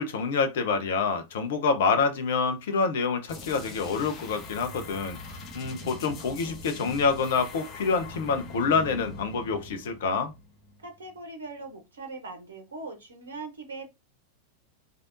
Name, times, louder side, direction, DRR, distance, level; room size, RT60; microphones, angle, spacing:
voice 1, 0.0-10.3, left 5 dB, 55° left, 0.6 m, -27 dB
sound 1, 3.3-10.9, left 2 dB, 35° left, 0.9 m, -42 dB
voice 2, 10.8-13.9, right 3 dB, 70° right, 0.8 m, -40 dB
3.3 x 2.5 x 2.6 m
figure-of-eight pair, 90°, 0 cm